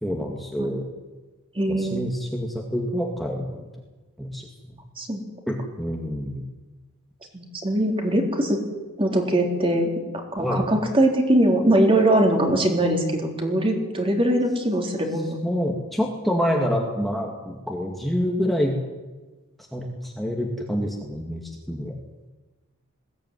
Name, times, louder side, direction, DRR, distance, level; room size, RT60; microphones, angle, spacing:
voice 1, 0.0-0.9 1.7-3.7 4.2-4.5 5.5-6.4 10.4-10.7 15.4-18.8 19.7-21.9, equal, ahead, -1 dB, 2.2 m, -27 dB
voice 2, 1.6-2.0 5.0-5.2 7.3-8.6 9.0-15.5, right 1 dB, 25° right, 2 dB, 3.6 m, -21 dB
21.0 x 16.5 x 9.5 m, 1.2 s
head